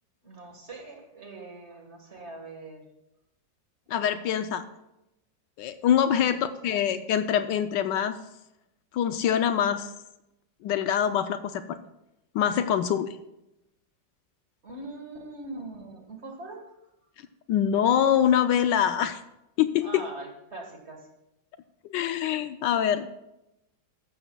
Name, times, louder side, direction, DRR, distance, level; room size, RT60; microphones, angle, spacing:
voice 1, 0.2-2.8 3.9-4.2 6.1-6.9 14.6-16.8 19.8-21.1, right 2 dB, 35° right, 2 dB, 1.8 m, -42 dB
voice 2, 3.9-4.7 5.6-8.2 8.9-9.9 10.6-11.8 12.3-13.2 17.5-19.2 19.6-20.0 21.9-23.1, left 9 dB, 75° left, 10 dB, 1.2 m, -24 dB
14.5 x 12.0 x 2.3 m, 0.89 s
omnidirectional pair, 2.0 m